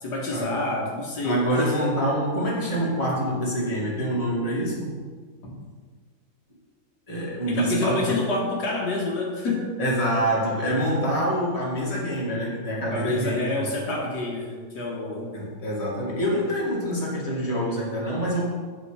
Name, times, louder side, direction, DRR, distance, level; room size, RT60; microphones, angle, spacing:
voice 1, 0.0-1.8 5.4-5.6 7.5-9.7 12.8-15.3, left 2 dB, 75° left, -2 dB, 1.9 m, -28 dB
voice 2, 1.2-5.0 7.1-8.0 9.8-13.7 15.3-18.4, equal, 20° left, -5 dB, 2.1 m, -26 dB
8.6 x 5.4 x 5.0 m, 1.5 s
omnidirectional pair, 1.8 m